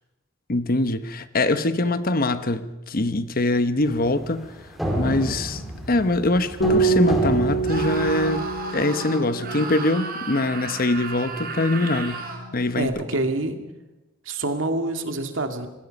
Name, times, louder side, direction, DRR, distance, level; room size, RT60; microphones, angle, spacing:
voice 1, 0.5-4.5 5.0-5.6 5.9-12.9, left 2 dB, 45° left, 12 dB, 1.1 m, -23 dB
sound 1, 3.8-8.7, equal, ahead, 4.3 m, -31 dB
Bass guitar, 6.6-11.3 11.6-12.9, right 4 dB, 60° left, 3.9 m, -27 dB
Screaming, 7.6-12.5, right 3 dB, 50° right, 4.1 m, -34 dB
voice 2, 12.8-13.6 14.3-15.7, right 2 dB, 70° right, 6 dB, 2.3 m, -26 dB
26.5 x 20.5 x 5.4 m, 1.0 s
head